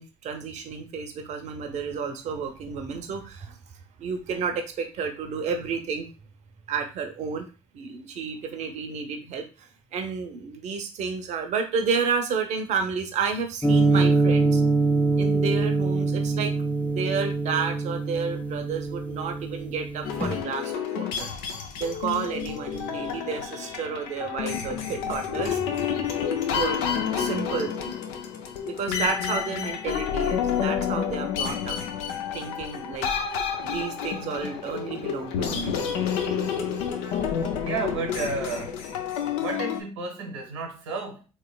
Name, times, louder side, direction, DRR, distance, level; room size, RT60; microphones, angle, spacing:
voice 1, 0.0-3.6 4.0-6.1 6.7-7.5 7.7-14.6 15.1-16.5 16.8-21.3 21.8-25.6 26.5-26.8 27.1-28.0 28.6-31.8 32.3-33.1 33.6-35.8, right 5 dB, 55° right, 5 dB, 0.7 m, -31 dB
sound 1, 13.6-20.4, right 3 dB, 10° left, 0.5 m, -24 dB
sound 2, 20.0-39.8, left 8 dB, 70° left, 0.5 m, -29 dB
voice 2, 37.6-38.8 39.4-41.3, right 4 dB, 85° right, 2 dB, 1.0 m, -32 dB
3.2 x 3.0 x 2.3 m, 0.32 s
hypercardioid pair, 55°, 15 cm